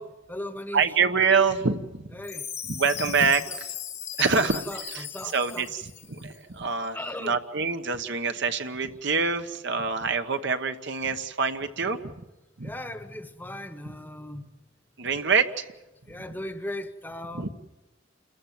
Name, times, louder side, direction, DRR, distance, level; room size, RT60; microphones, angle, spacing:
voice 1, 0.0-0.8 2.2-2.5 4.3-5.6 6.9-7.4 12.6-14.5 16.1-17.4, left 1 dB, 10° left, 1.1 m, -37 dB
voice 2, 0.7-2.2 2.6-3.7 4.2-12.2 12.6-12.7 15.0-15.7 17.3-17.5, right 5 dB, 60° right, 1.1 m, -26 dB
Chime, 2.2-6.2, left 9 dB, 35° left, 1.2 m, -37 dB
28.5 x 14.5 x 9.2 m
head